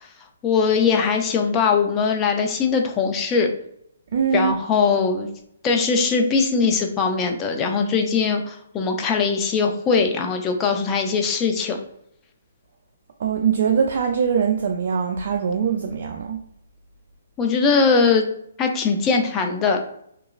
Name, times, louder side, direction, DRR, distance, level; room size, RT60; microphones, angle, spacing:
voice 1, 0.4-3.5 4.3-5.3 5.6-11.8 17.4-18.2 18.6-19.8, left 5 dB, 20° left, 3 dB, 0.4 m, -21 dB
voice 2, 4.1-4.6 13.2-16.4, right 7 dB, 55° right, 2 dB, 0.3 m, -22 dB
2.9 x 2.3 x 2.3 m, 0.70 s
hypercardioid pair, 150°, 0 cm